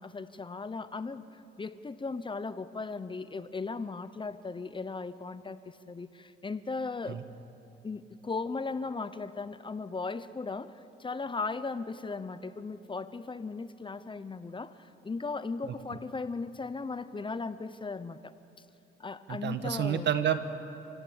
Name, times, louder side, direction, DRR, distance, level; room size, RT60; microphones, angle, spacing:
voice 1, 0.0-7.2 7.8-18.3 19.0-20.1, left 4 dB, 25° left, 13 dB, 0.9 m, -37 dB
voice 2, 19.3-20.4, right 9 dB, 60° right, 10 dB, 1.5 m, -29 dB
27.5 x 17.0 x 8.7 m, 2.8 s
cardioid pair, 90°, 20 cm